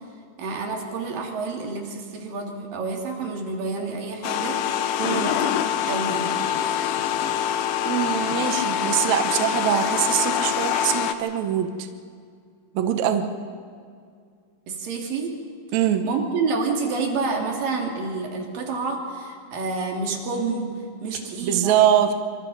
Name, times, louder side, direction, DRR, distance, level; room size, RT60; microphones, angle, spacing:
voice 1, 0.4-4.6 5.1-5.4 5.9-6.3 14.7-15.4 16.0-20.7 21.0-21.8, right 4 dB, 85° right, 1 dB, 4.0 m, -28 dB
sound 1, 4.2-11.1, left 9 dB, 85° left, 2.5 m, -25 dB
voice 2, 5.0-5.3 7.9-11.9 12.7-13.3 15.7-16.1 21.4-22.2, right 10 dB, 65° right, 7 dB, 2.1 m, -23 dB
26.0 x 25.5 x 4.0 m, 2.2 s
omnidirectional pair, 3.9 m